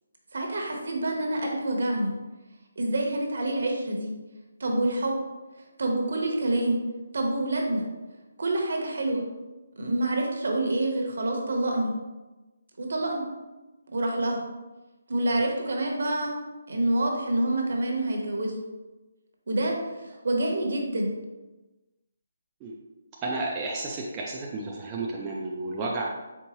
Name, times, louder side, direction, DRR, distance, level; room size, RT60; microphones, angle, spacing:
voice 1, 0.3-2.1 2.8-4.1 4.6-5.1 5.8-6.8 7.1-7.9 8.4-9.3 9.8-11.9 12.8-13.2 13.9-14.4 15.1-16.4 16.7-18.5 19.5-21.1, right 1 dB, 60° right, 1 dB, 1.0 m, -27 dB
voice 2, 23.2-26.1, right 2 dB, 15° right, -3 dB, 0.3 m, -32 dB
4.4 x 3.6 x 3.0 m, 1.1 s
hypercardioid pair, 175°, 0 cm